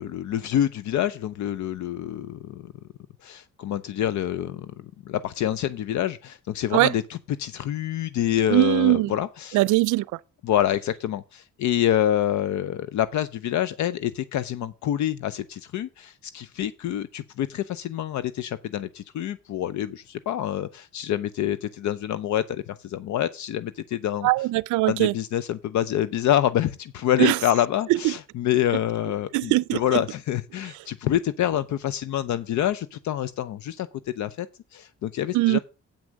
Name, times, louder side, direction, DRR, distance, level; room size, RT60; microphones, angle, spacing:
voice 1, 0.0-2.7 3.2-4.7 5.0-9.6 10.4-24.3 24.9-33.9 34.2-34.5 34.7-35.6, left 11 dB, 70° left, 0.6 m, -27 dB
voice 2, 8.5-9.1 9.5-10.2 24.2-25.1 27.2-27.4 27.9-28.1 29.3-30.0 35.3-35.6, right 19 dB, 80° right, 0.5 m, -21 dB
8.5 x 6.0 x 6.4 m
cardioid pair, 90°, 30 cm